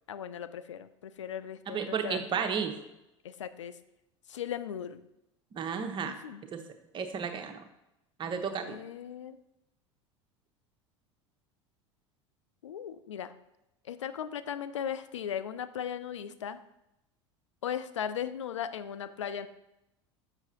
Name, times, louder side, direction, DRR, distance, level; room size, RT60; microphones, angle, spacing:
voice 1, 0.1-2.4 3.2-3.8 4.3-5.1 6.0-6.4 8.5-9.4 12.6-13.3 13.8-16.6 17.6-19.5, left 9 dB, 80° left, 12 dB, 0.4 m, -37 dB
voice 2, 1.7-2.7 5.5-6.2 6.5-6.6 6.9-7.6 8.2-8.8, right 6 dB, 30° right, 6 dB, 0.8 m, -32 dB
6.9 x 5.7 x 2.9 m, 0.89 s
figure-of-eight pair, 75°, 16 cm